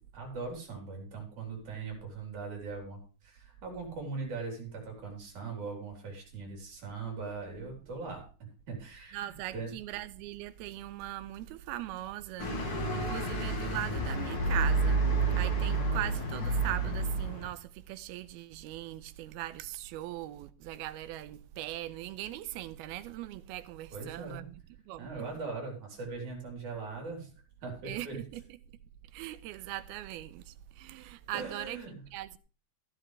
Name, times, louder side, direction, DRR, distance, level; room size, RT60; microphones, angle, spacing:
voice 1, 0.1-8.2 8.7-9.7 23.9-24.5 25.0-27.3 27.6-28.2 31.3-31.9, right 4 dB, 50° right, 5.1 m, -40 dB
voice 2, 9.1-15.0 15.3-24.4 24.9-25.3 27.9-28.4 29.1-31.8 32.1-32.4, right 14 dB, 85° right, 2.6 m, -40 dB
sound 1, 12.4-17.5, right 3 dB, 40° left, 2.8 m, -30 dB
14.0 x 11.0 x 3.3 m
omnidirectional pair, 4.4 m